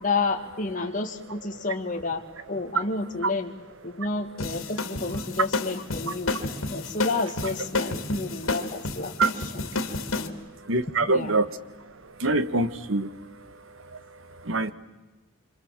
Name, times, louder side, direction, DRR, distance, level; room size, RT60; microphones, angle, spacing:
voice 1, 0.0-3.5 3.8-6.3 6.7-9.1 9.5-9.7 10.1-10.3 11.1-11.4, left 3 dB, 40° left, 2 dB, 2.0 m, -30 dB
sound 1, 4.4-10.3, left 3 dB, 80° left, 2.6 m, -30 dB
voice 2, 10.6-11.5 11.8-14.7, right 3 dB, 70° right, 13 dB, 1.4 m, -27 dB
26.5 x 26.5 x 7.5 m, 1.1 s
head